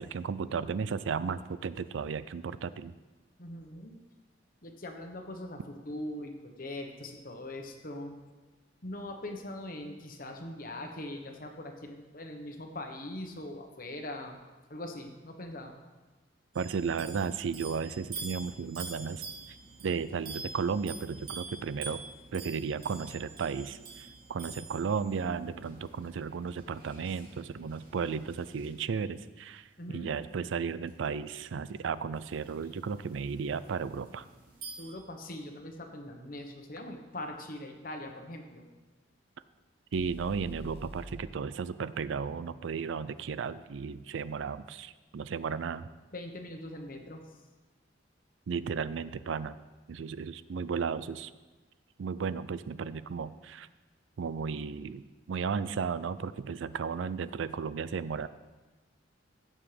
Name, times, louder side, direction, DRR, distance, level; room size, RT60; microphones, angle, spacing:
voice 1, 0.0-2.9 16.5-19.2 19.8-22.0 22.3-34.2 39.9-45.9 48.5-49.6 49.9-51.3 52.0-53.7 54.2-55.0 55.3-58.3, right 5 dB, 80° right, 15 dB, 0.4 m, -34 dB
voice 2, 3.4-3.9 4.6-8.2 8.8-14.4 14.7-15.8 29.8-30.1 34.8-38.7 46.1-47.4, left 1 dB, 45° left, 4 dB, 1.1 m, -41 dB
sound 1, 16.5-28.8 30.9-31.0 32.1-34.9, right 4 dB, 50° right, 2.5 m, -47 dB
sound 2, 39.9-43.9, right 1 dB, 35° right, 1.2 m, -48 dB
15.5 x 7.1 x 3.3 m, 1.2 s
head